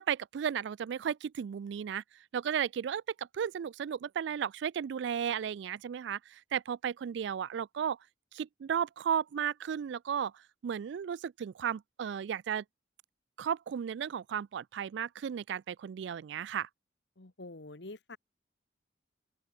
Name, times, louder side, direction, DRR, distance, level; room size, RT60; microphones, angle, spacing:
voice 1, 0.0-2.0 2.3-8.0 8.3-10.3 10.6-12.6 13.4-16.7, right 8 dB, 65° right, 0.3 m, -34 dB
voice 2, 17.2-18.2, left 2 dB, 65° left, 1.3 m, -46 dB
open air
head